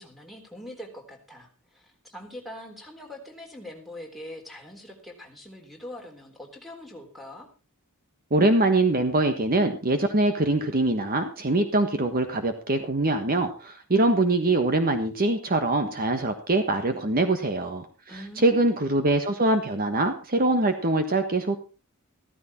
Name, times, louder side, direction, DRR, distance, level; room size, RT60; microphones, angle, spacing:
voice 1, 0.0-7.5 18.1-18.8, left 1 dB, ahead, 3 dB, 3.7 m, -43 dB
voice 2, 8.3-17.9 18.4-21.6, right 2 dB, 40° right, 7 dB, 1.4 m, -23 dB
15.0 x 14.0 x 4.3 m, 0.32 s
head